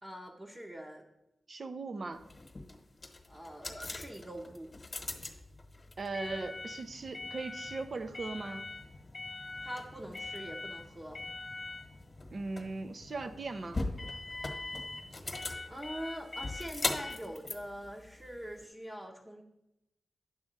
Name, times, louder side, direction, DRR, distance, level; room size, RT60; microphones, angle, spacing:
voice 1, 0.0-1.0 3.3-4.7 9.6-11.2 15.7-19.4, equal, 25° right, -3 dB, 0.9 m, -44 dB
voice 2, 1.5-2.2 6.0-8.6 12.3-13.9, right 3 dB, 60° right, 9 dB, 0.7 m, -39 dB
sound 1, 2.2-18.6, left 2 dB, 40° left, 1.2 m, -41 dB
9.7 x 3.5 x 6.6 m, 0.88 s
cardioid pair, 60°, 0 cm